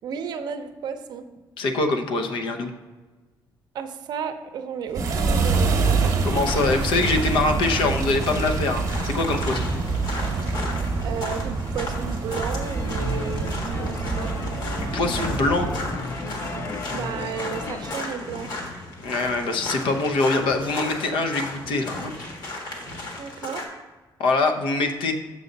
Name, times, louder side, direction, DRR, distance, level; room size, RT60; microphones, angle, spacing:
voice 1, 0.0-1.2 3.7-6.0 11.0-14.7 16.9-18.7 23.2-23.6, right 6 dB, 60° right, 8 dB, 0.6 m, -33 dB
voice 2, 1.6-2.7 6.2-9.7 14.9-15.7 19.0-22.1 24.2-25.1, left 3 dB, 85° left, 5 dB, 0.8 m, -24 dB
sound 1, 4.9-23.6, left 2 dB, 55° left, 1.4 m, -35 dB
sound 2, 4.9-16.0, right 4 dB, 40° right, 0.9 m, -26 dB
sound 3, 12.6-17.9, left 2 dB, 35° left, 0.6 m, -34 dB
6.8 x 6.4 x 4.0 m, 1.3 s
cardioid pair, 170°, 8 cm